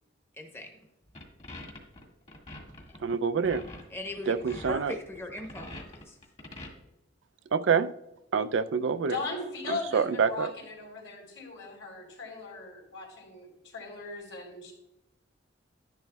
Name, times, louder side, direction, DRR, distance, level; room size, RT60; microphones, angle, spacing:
voice 1, 0.3-0.7 3.9-6.2, left 2 dB, 15° left, 2 dB, 1.0 m, -39 dB
sound 1, 1.1-6.7, left 1 dB, 35° left, 1.7 m, -44 dB
voice 2, 3.0-3.6 4.3-4.9 7.5-7.9 8.3-9.2 9.7-10.5, right 6 dB, 75° right, 12 dB, 0.4 m, -26 dB
voice 3, 9.1-13.5 13.7-14.7, left 3 dB, 85° left, -2 dB, 3.7 m, -38 dB
11.5 x 10.5 x 2.3 m, 0.88 s
head